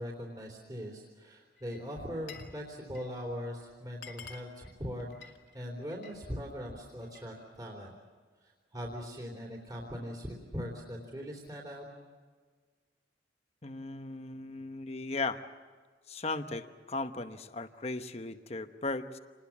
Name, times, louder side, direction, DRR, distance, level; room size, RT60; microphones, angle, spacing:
voice 1, 0.0-7.9 8.4-11.8, equal, 20° right, -2 dB, 3.3 m, -41 dB
Glass, 1.6-2.6 2.8-3.2 3.6-3.7 3.9-6.2 6.6-7.3, left 6 dB, 70° left, 2.3 m, -51 dB
voice 2, 13.6-15.4 16.1-19.2, left 3 dB, 35° left, 8 dB, 1.0 m, -37 dB
28.0 x 20.5 x 7.4 m, 1.5 s
head